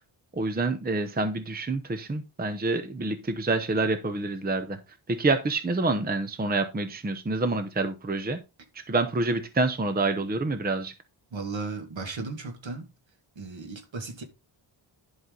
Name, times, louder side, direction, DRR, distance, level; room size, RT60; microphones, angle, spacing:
voice 1, 0.4-4.8 5.1-8.4 8.9-10.9, right 3 dB, 20° right, 0.8 m, -27 dB
voice 2, 11.3-12.9 13.4-14.2, right 3 dB, 65° right, 2.2 m, -35 dB
11.0 x 5.8 x 3.9 m
wide cardioid pair, 175°, 50 cm